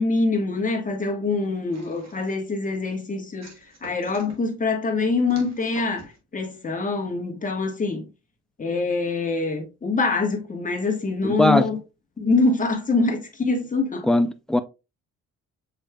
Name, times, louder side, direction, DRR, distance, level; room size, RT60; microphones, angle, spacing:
voice 1, 0.0-3.5 3.8-8.1 8.6-11.8 12.2-14.1, left 3 dB, 25° left, 1.3 m, -24 dB
sound 1, 1.7-2.5 3.4-4.4 5.3-6.2, right 3 dB, 60° right, 1.6 m, -46 dB
voice 2, 11.2-11.7 14.0-14.6, left 1 dB, ahead, 0.5 m, -20 dB
7.1 x 3.1 x 2.2 m
cardioid pair, 90°, 30 cm